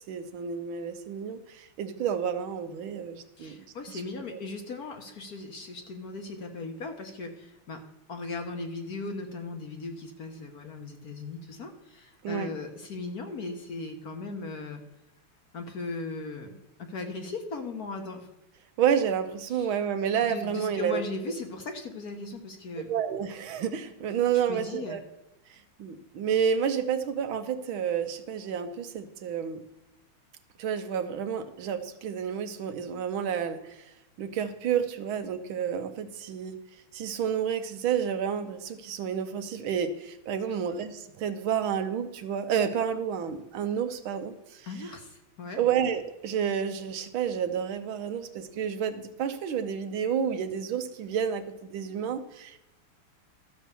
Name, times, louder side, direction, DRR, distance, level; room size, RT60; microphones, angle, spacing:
voice 1, 0.1-4.0 4.3-4.4 12.2-12.5 18.8-21.0 22.9-25.0 25.5-29.6 30.6-33.8 34.2-36.6 36.9-44.9 45.6-52.6, right 8 dB, 70° right, 9 dB, 1.6 m, -30 dB
voice 2, 3.4-7.8 8.1-14.8 15.5-16.5 16.8-18.3 19.5-19.7 20.3-22.9 24.5-25.0 44.7-45.6, left 3 dB, 50° left, 5 dB, 1.3 m, -38 dB
13.0 x 6.1 x 6.7 m, 0.95 s
omnidirectional pair, 2.4 m